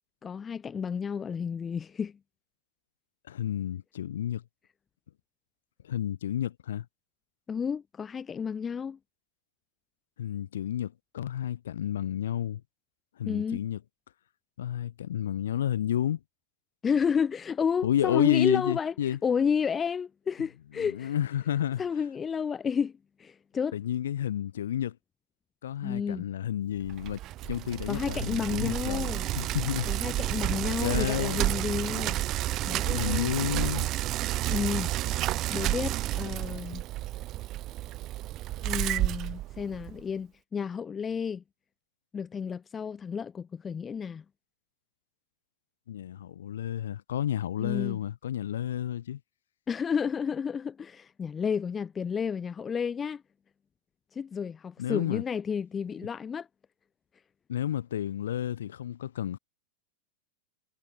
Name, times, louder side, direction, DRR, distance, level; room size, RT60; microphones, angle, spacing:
voice 1, 0.2-2.1 7.5-9.0 13.3-13.6 16.8-21.1 21.8-22.9 23.2-23.8 25.8-26.3 27.9-29.3 29.9-32.2 32.6-33.3 34.5-35.2 35.5-36.8 38.6-41.4 42.1-44.2 47.6-48.0 49.7-53.2 54.1-56.5, left 6 dB, 20° left, 1.0 m, -31 dB
voice 2, 3.3-4.4 5.8-6.8 10.2-12.6 13.2-13.8 14.6-16.2 17.8-19.2 20.8-21.8 23.7-25.0 25.6-27.2 27.4-29.9 30.6-31.4 32.8-33.9 45.9-49.2 54.8-55.2 57.5-59.4, left 10 dB, 60° left, 3.0 m, -31 dB
Bicycle, 26.9-40.0, right 15 dB, 35° right, 1.6 m, -31 dB
figure-of-eight pair, 90°, 0 cm